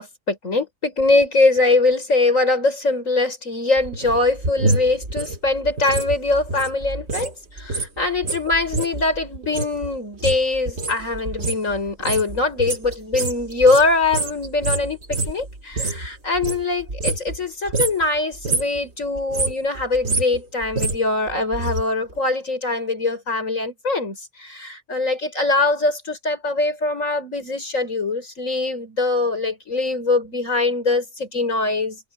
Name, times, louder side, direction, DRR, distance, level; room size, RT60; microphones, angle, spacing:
voice 1, 0.0-32.0, left 3 dB, 75° left, 5.8 m, -22 dB
sound 1, 3.8-7.3 7.6-16.1 16.3-17.4 17.7-18.0 18.3-18.8 19.2-21.8 22.1-22.2, right 2 dB, 55° right, 2.5 m, -27 dB
omnidirectional pair, 1.4 m